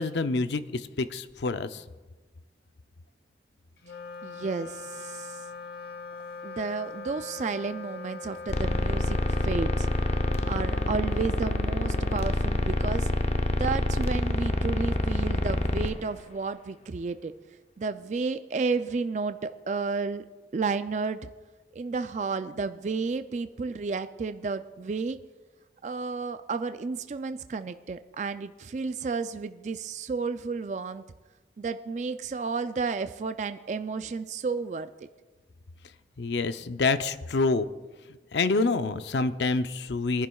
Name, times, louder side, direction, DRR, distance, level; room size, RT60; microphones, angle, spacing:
voice 1, 0.0-1.8 36.2-37.7 38.3-40.3, left 3 dB, 80° left, 11 dB, 0.6 m, -27 dB
Wind instrument woodwind instrument, 3.8-13.4, left 4 dB, 60° left, 1.0 m, -42 dB
voice 2, 4.2-5.4 6.4-9.9 10.5-13.1 13.5-17.3 17.8-20.2 20.5-21.2 21.7-25.2 25.8-31.0 31.6-34.9, right 4 dB, 40° right, 10 dB, 0.3 m, -32 dB
sound 1, 8.5-15.9, left 1 dB, 40° left, 0.6 m, -27 dB
23.5 x 10.5 x 2.3 m, 1.3 s
head